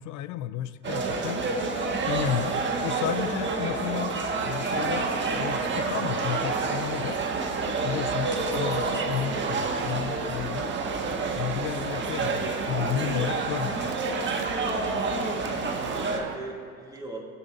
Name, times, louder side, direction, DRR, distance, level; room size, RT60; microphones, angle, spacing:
voice 1, 0.0-1.5 2.1-7.2 7.8-10.7 11.3-13.9, left 11 dB, 45° left, 14 dB, 0.5 m, -32 dB
sound 1, 0.8-16.2, right 3 dB, 25° right, 1.4 m, -28 dB
sound 2, 5.0-16.4, right 11 dB, 65° right, 0.7 m, -40 dB
voice 2, 15.6-17.2, right 3 dB, 10° right, -2 dB, 2.3 m, -41 dB
19.0 x 8.1 x 2.5 m, 2.2 s
hypercardioid pair, 90°, 41 cm